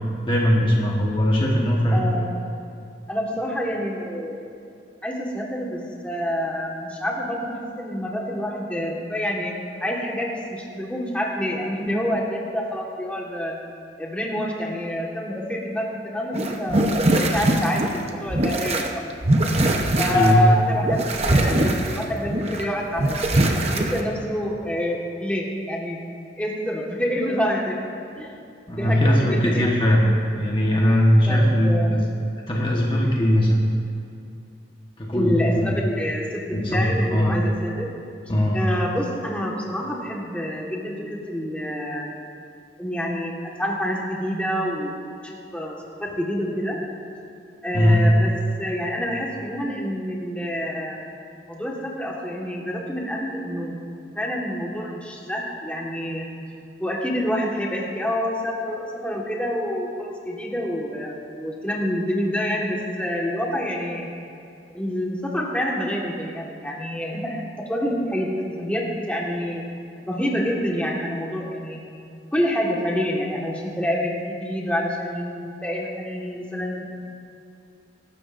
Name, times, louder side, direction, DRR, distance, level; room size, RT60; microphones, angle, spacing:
voice 1, 0.2-2.0 20.0-20.4 28.7-30.1 30.4-32.1 32.5-33.7 35.0-35.8 36.5-37.4 38.3-38.6 47.7-48.0, equal, 25° left, -3 dB, 1.3 m, -20 dB
voice 2, 1.9-2.4 3.1-4.5 5.0-9.5 9.8-13.5 14.0-19.0 20.0-23.5 23.7-26.0 26.4-27.8 28.2-28.3 28.7-29.7 31.3-31.9 35.1-37.9 38.5-42.1 42.8-46.8 47.6-48.3 48.6-51.0 51.5-53.8 54.1-56.3 56.8-64.1 64.7-68.3 68.6-69.6 70.1-71.8 72.3-76.8, equal, 5° left, -3 dB, 1.6 m, -27 dB
sound 1, 16.3-18.9 19.2-20.3 20.7-22.6 23.0-24.0, right 1 dB, 35° right, 0.9 m, -22 dB
24.0 x 12.5 x 2.6 m, 2.5 s
head